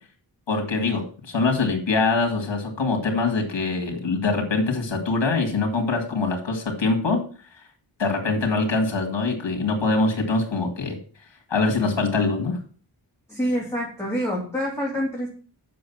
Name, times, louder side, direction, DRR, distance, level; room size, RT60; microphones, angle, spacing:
voice 1, 0.5-7.2 8.0-11.0 11.5-12.6, left 3 dB, 80° left, 4 dB, 2.4 m, -23 dB
voice 2, 13.3-15.3, equal, 5° left, -4 dB, 3.2 m, -26 dB
7.7 x 6.6 x 7.2 m, 0.41 s
wide cardioid pair, 70°, 43 cm